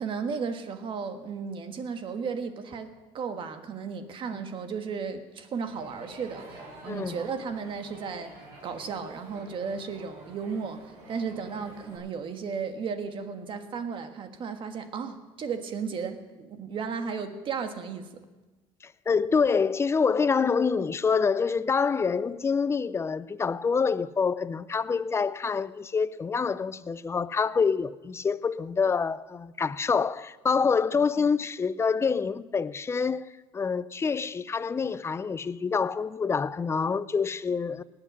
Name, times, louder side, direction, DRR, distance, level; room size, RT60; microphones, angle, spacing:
voice 1, 0.0-8.3 8.6-10.8 11.1-18.1, right 5 dB, 50° right, 1.4 m, -34 dB
Crowd, 5.7-12.0, right 2 dB, 85° right, 4.6 m, -48 dB
voice 2, 6.9-7.3 18.8-37.8, left 5 dB, 25° left, 0.5 m, -26 dB
19.0 x 7.9 x 6.1 m
cardioid pair, 100°, 11 cm